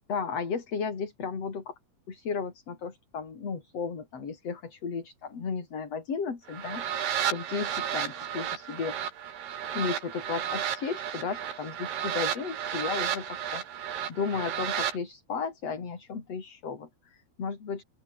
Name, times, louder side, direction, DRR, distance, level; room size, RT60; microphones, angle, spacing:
voice 1, 0.1-1.7 2.1-9.0 9.7-17.8, left 5 dB, 40° left, 4.5 m, -34 dB
sound 1, 6.5-15.0, right 9 dB, 90° right, 4.6 m, -33 dB
open air
omnidirectional pair, 4.5 m